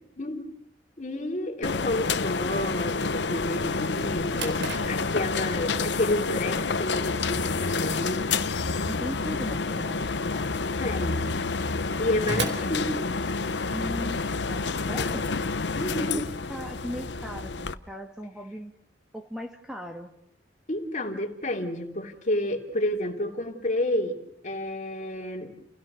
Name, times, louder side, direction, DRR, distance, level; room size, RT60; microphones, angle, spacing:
voice 1, 0.2-0.5 1.0-8.4 10.8-11.4 12.0-13.2 15.7-16.2 20.7-24.2 24.4-25.5, left 1 dB, 45° left, 3 dB, 3.1 m, -30 dB
sound 1, 1.6-17.7, left 4 dB, 80° left, 0.9 m, -29 dB
Drawer open or close, 4.3-13.7, right 3 dB, 80° right, 4.1 m, -40 dB
voice 2, 8.9-10.6 13.7-15.4 16.0-18.7 19.1-20.1, equal, 5° right, 4 dB, 1.5 m, -38 dB
30.0 x 17.0 x 6.3 m, 0.75 s
head